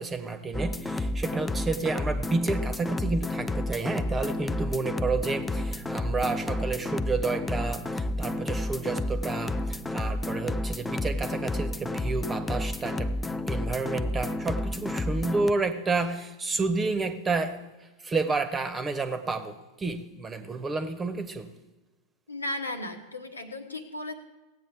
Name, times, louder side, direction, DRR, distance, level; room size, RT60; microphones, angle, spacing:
voice 1, 0.0-17.6 18.0-21.5, right 3 dB, 15° right, 1.0 m, -30 dB
sound 1, 0.5-15.5, left 1 dB, 10° left, 0.4 m, -31 dB
voice 2, 22.3-24.1, left 1 dB, 80° left, 1.3 m, -35 dB
17.5 x 8.4 x 3.5 m
figure-of-eight pair, 90°, 0 cm